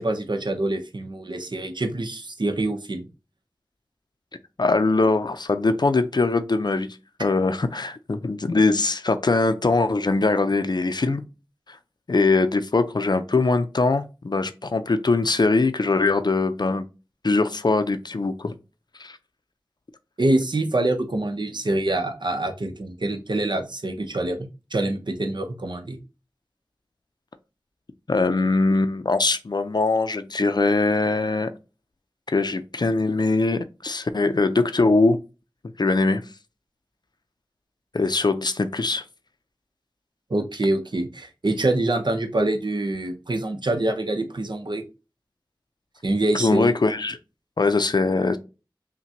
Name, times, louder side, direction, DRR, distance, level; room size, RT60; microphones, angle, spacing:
voice 1, 0.0-3.1 20.2-26.0 40.3-44.8 46.0-46.7, right 2 dB, 65° right, 0.7 m, -25 dB
voice 2, 4.6-6.9 7.2-11.2 12.1-16.8 17.2-18.5 19.0-19.2 28.1-31.5 32.3-35.2 35.8-36.2 37.9-39.0 46.3-47.2 47.6-48.4, left 3 dB, 60° left, 0.4 m, -22 dB
5.7 x 2.2 x 2.8 m
wide cardioid pair, 45°, 8 cm